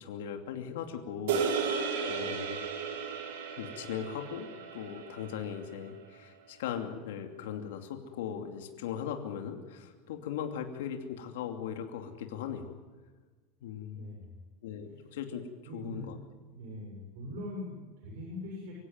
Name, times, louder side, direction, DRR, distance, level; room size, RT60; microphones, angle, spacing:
voice 1, 0.0-2.6 3.6-12.8 13.6-14.0 14.6-15.5 15.7-16.2, left 8 dB, 90° left, 4 dB, 2.7 m, -39 dB
sound 1, 1.3-5.7, right 6 dB, 85° right, 4.6 m, -34 dB
voice 2, 13.9-14.4 14.9-15.0 15.7-16.1 16.5-18.8, left 1 dB, 65° right, -1 dB, 7.1 m, -42 dB
25.0 x 16.5 x 9.5 m, 1.4 s
supercardioid pair, 165°, 0 cm